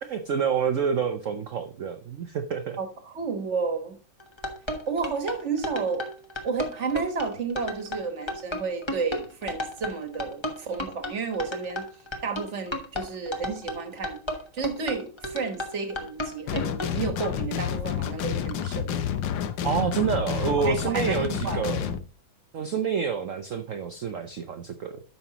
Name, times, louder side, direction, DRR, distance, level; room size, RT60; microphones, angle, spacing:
voice 1, 0.0-2.8 19.6-21.9 22.5-25.0, right 6 dB, 70° right, 0.7 m, -28 dB
voice 2, 2.8-4.0 4.9-6.0 6.4-11.8 12.2-14.2 14.5-19.0 20.6-21.6, right 5 dB, 40° right, 1.4 m, -31 dB
sound 1, 4.2-16.9, left 1 dB, 20° left, 0.8 m, -33 dB
sound 2, 16.5-22.0, left 9 dB, 70° left, 1.4 m, -29 dB
13.0 x 5.5 x 2.9 m
omnidirectional pair, 2.2 m